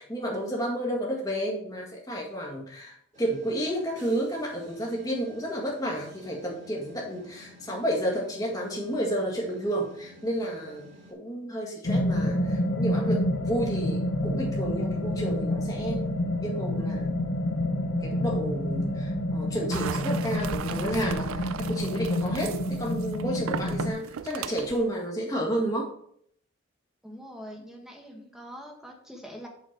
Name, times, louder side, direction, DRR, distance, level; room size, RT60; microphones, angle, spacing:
voice 1, 0.0-16.0 16.4-17.2 18.0-25.9, equal, 15° left, -2 dB, 1.8 m, -31 dB
sound 1, 3.1-11.1, equal, 35° right, 1.9 m, -51 dB
sound 2, 11.8-23.9, left 1 dB, 60° left, 0.8 m, -28 dB
sound 3, 19.7-24.8, right 8 dB, 70° right, 0.3 m, -37 dB
voice 2, 27.0-29.5, equal, ahead, 0 dB, 1.2 m, -43 dB
8.3 x 4.4 x 4.5 m, 0.66 s
head